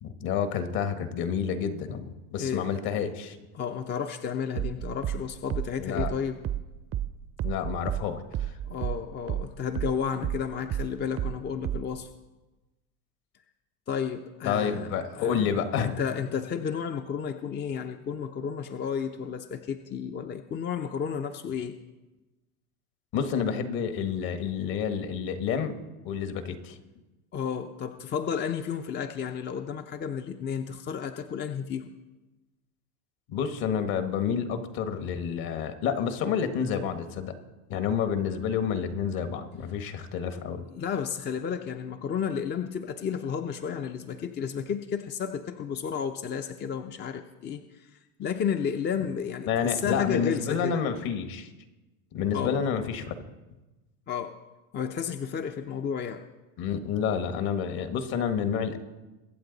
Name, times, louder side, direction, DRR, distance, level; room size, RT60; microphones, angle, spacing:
voice 1, 0.0-3.4 5.8-6.1 7.4-8.5 14.4-16.0 23.1-26.8 33.3-37.3 37.7-40.6 49.5-51.5 52.1-53.2 56.6-58.8, left 7 dB, 50° left, 8 dB, 1.6 m, -29 dB
voice 2, 2.4-2.7 3.5-6.4 8.6-12.1 13.9-21.8 27.3-32.0 40.7-50.8 52.3-52.6 54.1-54.3 54.7-56.2, left 7 dB, 25° left, 7 dB, 0.6 m, -32 dB
sound 1, 4.6-9.5 9.8-12.0, right 11 dB, 30° right, 0.6 m, -31 dB
23.5 x 7.8 x 4.0 m, 1.1 s
supercardioid pair, 110°, 44 cm